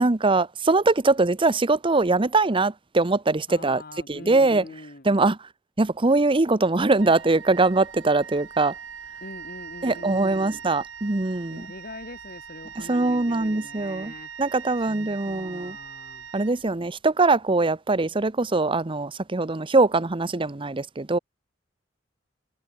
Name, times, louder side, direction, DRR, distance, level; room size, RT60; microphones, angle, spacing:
voice 1, 0.0-3.8 4.1-4.6 5.0-5.4 5.8-8.7 9.8-11.7 12.8-14.1 14.4-15.8 16.3-21.2, right 3 dB, 25° right, 0.8 m, -22 dB
voice 2, 3.5-5.2 9.2-10.6 11.5-14.3 14.9-16.3, left 2 dB, 50° left, 2.6 m, -43 dB
Wind instrument woodwind instrument, 7.0-17.1, right 7 dB, 90° right, 2.9 m, -42 dB
head